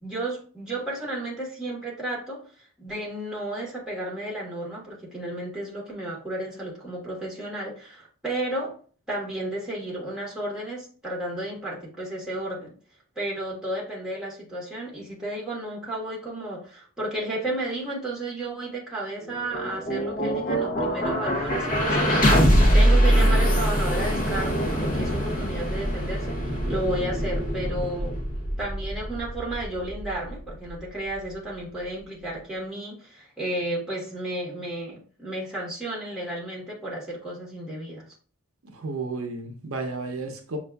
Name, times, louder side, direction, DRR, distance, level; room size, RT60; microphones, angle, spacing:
voice 1, 0.0-8.8 9.1-12.7 13.1-28.1 28.6-38.1, right 1 dB, 5° right, 1.3 m, -33 dB
sound 1, 19.2-31.3, equal, 40° left, 0.8 m, -23 dB
voice 2, 38.6-40.6, right 3 dB, 70° right, 0.7 m, -32 dB
6.3 x 2.4 x 2.2 m
head